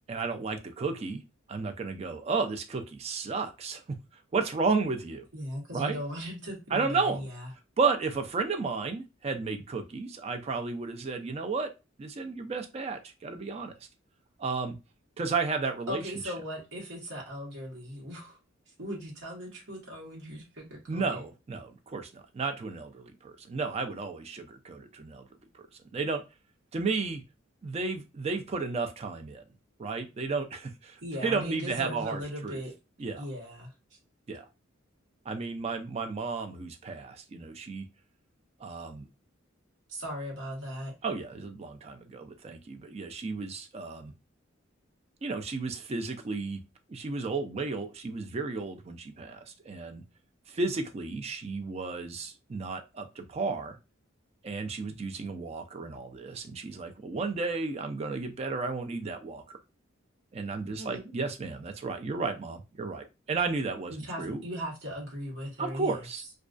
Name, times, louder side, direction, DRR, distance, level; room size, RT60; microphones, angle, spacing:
voice 1, 0.1-1.2 1.5-4.0 4.3-5.3 5.7-6.0 6.7-7.3 7.8-11.7 12.0-13.7 14.4-14.8 15.2-16.0 20.9-25.2 25.9-26.2 26.7-27.2 27.6-29.4 29.8-32.6 33.0-33.2 34.3-34.4 35.3-37.9 38.6-39.1 41.0-44.1 45.2-46.6 46.9-50.0 50.5-53.8 54.4-59.6 60.3-64.4 65.6-66.2, right 4 dB, 30° right, 0.3 m, -33 dB
voice 2, 5.3-7.5 15.9-18.4 18.8-21.2 31.0-32.7 33.2-33.7 39.9-40.9 60.8-61.1 63.9-66.0, equal, 70° right, 1.0 m, -38 dB
2.3 x 2.2 x 2.4 m
head